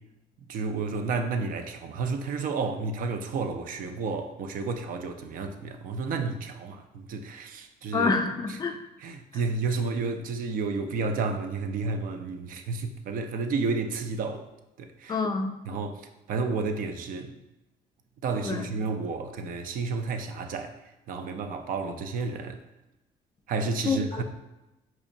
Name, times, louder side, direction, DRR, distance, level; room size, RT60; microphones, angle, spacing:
voice 1, 0.5-8.1 9.0-14.5 14.8-15.1 15.7-17.3 18.2-20.8 21.1-22.6 23.5-24.2, right 4 dB, 55° right, 0.4 m, -31 dB
voice 2, 7.9-8.8 9.3-9.4 15.1-15.5 18.4-18.7 23.8-24.2, left 4 dB, 25° left, 0.4 m, -27 dB
4.3 x 2.8 x 2.6 m
cardioid pair, 110°, 17 cm